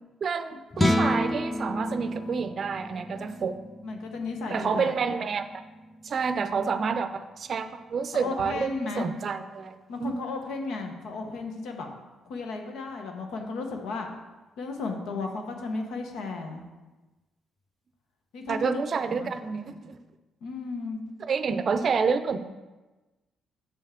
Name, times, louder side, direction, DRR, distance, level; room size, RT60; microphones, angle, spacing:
voice 1, 0.2-3.6 4.5-5.5 6.0-10.2 18.5-20.0 21.2-22.5, right 5 dB, 50° right, 10 dB, 0.5 m, -29 dB
sound 1, 0.7-7.1, left 1 dB, 10° left, 0.4 m, -31 dB
voice 2, 3.8-4.9 8.1-9.1 9.9-11.9 12.2-14.1 14.6-16.6 18.3-18.8 19.1-19.3 20.4-21.0, left 3 dB, 80° left, 4 dB, 0.9 m, -34 dB
7.0 x 5.5 x 3.7 m, 1.2 s
cardioid pair, 90°, 0 cm